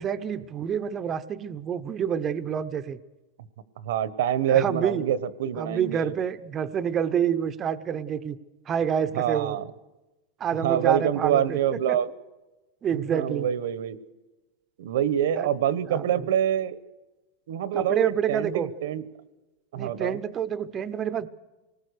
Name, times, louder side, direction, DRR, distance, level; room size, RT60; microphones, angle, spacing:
voice 1, 0.0-3.0 4.5-5.1 5.5-8.4 8.7-9.6 10.4-12.0 12.8-13.5 15.3-15.5 15.8-16.2 17.7-18.7 19.7-21.3, right 8 dB, 20° right, 12 dB, 0.8 m, -28 dB
voice 2, 3.8-6.1 9.1-9.6 10.6-12.1 12.9-14.0 14.8-16.8 17.5-19.0 19.7-20.2, right 10 dB, 70° right, 16 dB, 1.2 m, -26 dB
25.5 x 19.5 x 6.6 m, 1.1 s
supercardioid pair, 170°, 0 cm